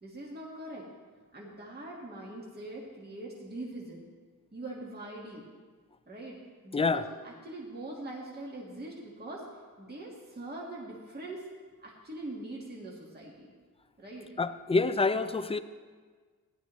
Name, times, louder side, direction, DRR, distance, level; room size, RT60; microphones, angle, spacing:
voice 1, 0.0-0.9 1.3-4.0 4.5-5.5 6.1-9.5 9.8-11.5 11.8-13.5 14.0-14.3, right 2 dB, 25° right, -4 dB, 1.6 m, -42 dB
voice 2, 6.7-7.1 14.4-15.6, left 3 dB, 20° left, 12 dB, 0.3 m, -27 dB
17.0 x 11.0 x 3.1 m, 1.5 s
wide cardioid pair, 165°, 36 cm